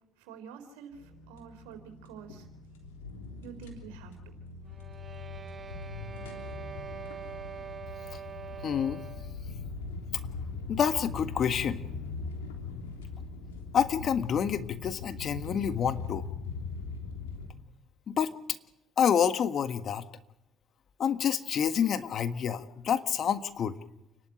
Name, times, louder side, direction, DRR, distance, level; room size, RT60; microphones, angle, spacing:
voice 1, 0.2-2.5 3.4-4.2, right 7 dB, 80° right, 6 dB, 3.8 m, -47 dB
sound 1, 0.9-17.5, left 4 dB, 90° left, 3.3 m, -41 dB
sound 2, 4.7-9.4, right 8 dB, 40° right, 1.2 m, -44 dB
voice 2, 8.6-9.0 10.7-11.8 13.7-16.2 18.1-18.3 19.0-20.1 21.0-23.8, left 8 dB, 55° left, 10 dB, 1.6 m, -28 dB
29.0 x 11.5 x 9.3 m, 0.89 s
hypercardioid pair, 55°, 0 cm